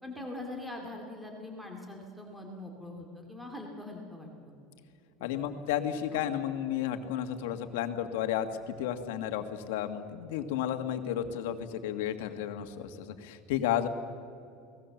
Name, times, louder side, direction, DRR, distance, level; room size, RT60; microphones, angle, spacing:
voice 1, 0.0-4.5 5.2-5.4 6.1-6.2, left 2 dB, ahead, 1 dB, 2.4 m, -43 dB
voice 2, 5.2-13.9, left 10 dB, 85° left, 7 dB, 1.8 m, -32 dB
29.5 x 19.0 x 7.2 m, 2.4 s
cardioid pair, 170°, 0 cm